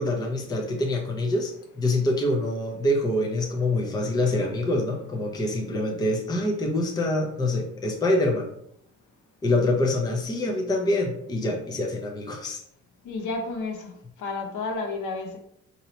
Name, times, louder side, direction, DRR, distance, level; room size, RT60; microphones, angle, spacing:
voice 1, 0.0-8.5 9.4-12.6, left 1 dB, 15° left, 1 dB, 0.5 m, -25 dB
voice 2, 13.0-13.9 14.2-15.4, left 3 dB, 85° left, 4 dB, 0.8 m, -31 dB
2.8 x 2.7 x 4.2 m, 0.72 s
cardioid pair, 170°, 30 cm